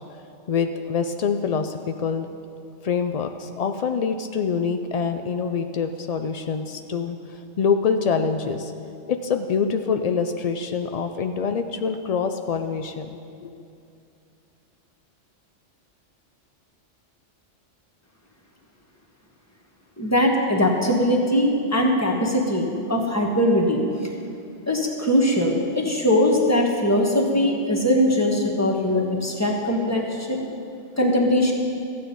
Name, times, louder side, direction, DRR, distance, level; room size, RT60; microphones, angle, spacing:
voice 1, 0.5-2.3 2.8-7.2 7.6-8.7 9.1-13.5, left 6 dB, 80° left, 7 dB, 0.3 m, -25 dB
voice 2, 20.0-24.1 24.7-30.4 31.0-31.5, left 1 dB, 15° left, 0 dB, 1.3 m, -21 dB
14.0 x 8.8 x 5.3 m, 2.6 s
omnidirectional pair, 1.3 m